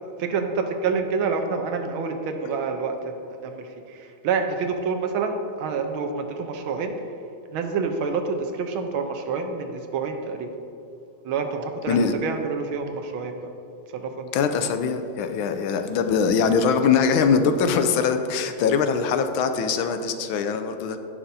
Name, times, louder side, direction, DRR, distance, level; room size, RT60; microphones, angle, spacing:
voice 1, 0.2-6.9 7.5-10.5 11.2-13.5 13.9-14.3, right 5 dB, 90° right, 5 dB, 1.6 m, -28 dB
voice 2, 14.3-21.0, left 6 dB, 90° left, 8 dB, 1.5 m, -22 dB
16.5 x 6.0 x 2.8 m, 2.7 s
omnidirectional pair, 2.2 m